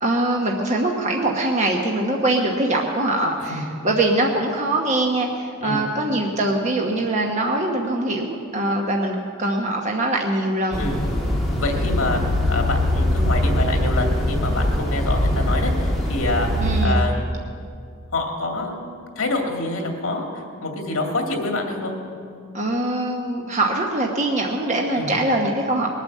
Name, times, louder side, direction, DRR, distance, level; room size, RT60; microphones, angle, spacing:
voice 1, 0.0-10.8 16.6-17.0 22.5-25.9, right 2 dB, 35° right, 0 dB, 1.1 m, -23 dB
sound 1, 10.7-16.9, left 1 dB, ahead, 1.9 m, -22 dB
voice 2, 11.6-16.5 16.8-17.3 18.1-18.8 19.2-22.0 24.9-25.1, left 2 dB, 75° left, 2 dB, 2.4 m, -26 dB
20.5 x 9.2 x 7.3 m, 2.3 s
head